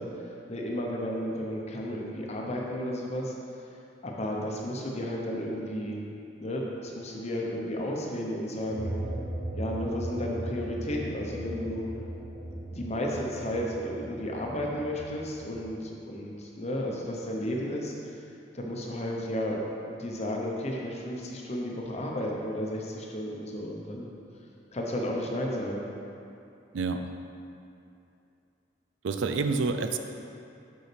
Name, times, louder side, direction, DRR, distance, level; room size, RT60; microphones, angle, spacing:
voice 1, 0.0-3.3 4.0-6.0 6.4-9.0 9.6-11.9 12.7-18.1 18.5-24.1 24.7-25.9, equal, 35° left, -1 dB, 0.8 m, -33 dB
sound 1, 8.7-15.6, right 1 dB, 70° right, 0.9 m, -38 dB
voice 2, 29.0-30.0, right 4 dB, 85° right, 7 dB, 0.4 m, -28 dB
6.6 x 5.6 x 3.3 m, 2.6 s
head